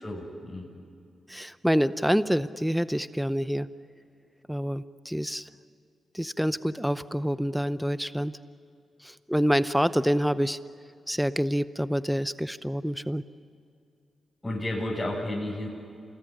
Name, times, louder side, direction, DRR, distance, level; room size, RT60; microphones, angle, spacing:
voice 1, 0.0-0.7 14.4-15.7, left 1 dB, 15° left, -5 dB, 6.8 m, -32 dB
voice 2, 1.3-3.7 4.5-5.5 6.1-8.3 9.0-10.6 11.1-13.2, equal, ahead, 14 dB, 0.7 m, -27 dB
28.5 x 19.5 x 10.0 m, 2.4 s
cardioid pair, 60°, 0 cm